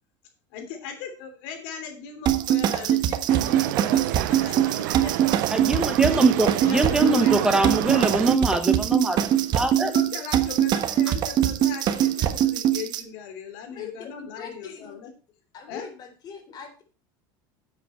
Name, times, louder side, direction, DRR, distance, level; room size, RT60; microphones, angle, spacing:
voice 1, 0.5-5.1 5.8-5.9 6.6-7.4 7.9-8.1 9.7-15.1 15.7-15.9, left 7 dB, 70° left, 6 dB, 3.1 m, -38 dB
sound 1, 2.3-13.0, right 11 dB, 45° right, 1.1 m, -23 dB
sound 2, 3.3-8.4, right 18 dB, 90° right, 0.5 m, -30 dB
voice 2, 5.5-9.9, right 1 dB, 5° right, 8 dB, 0.9 m, -23 dB
voice 3, 13.7-14.1 14.4-15.0 15.5-16.8, left 6 dB, 40° left, 5 dB, 3.7 m, -41 dB
10.5 x 8.1 x 4.4 m, 0.36 s
supercardioid pair, 135°, 11 cm